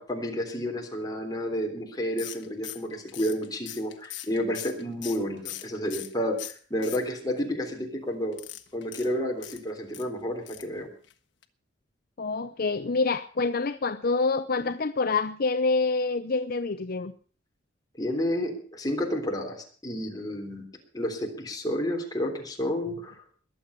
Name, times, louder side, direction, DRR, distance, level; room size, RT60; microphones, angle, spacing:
voice 1, 0.0-8.4 8.7-10.9 18.0-20.7 20.9-23.1, equal, 20° left, 3.4 m, -30 dB
sound 1, 2.2-6.1 6.4-7.4 8.3-10.1 10.5-10.8 11.0-11.1 11.4-11.5, left 14 dB, 75° left, 1.4 m, -41 dB
voice 2, 12.2-17.1, left 3 dB, 55° left, 0.7 m, -27 dB
21.5 x 7.6 x 6.8 m
head